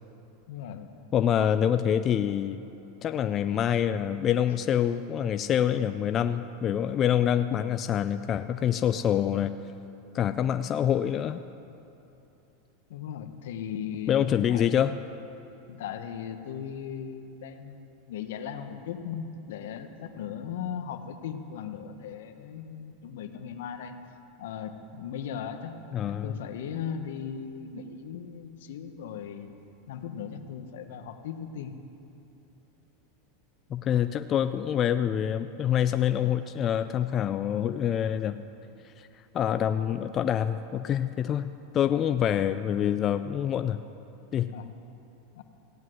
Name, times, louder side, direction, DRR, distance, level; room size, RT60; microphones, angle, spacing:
voice 1, 0.5-1.0 12.9-14.7 15.7-24.0 24.4-25.8 26.1-29.5 29.9-31.7 44.5-44.7 45.3-45.4, left 8 dB, 80° left, 8 dB, 1.2 m, -38 dB
voice 2, 1.1-2.6 3.0-9.5 10.1-11.4 14.1-15.0 25.9-26.3 33.7-38.4 39.0-39.1 39.3-43.8 44.3-44.5, left 9 dB, 30° left, 10 dB, 0.4 m, -26 dB
15.5 x 9.6 x 7.9 m, 2.9 s
supercardioid pair, 140°, 0 cm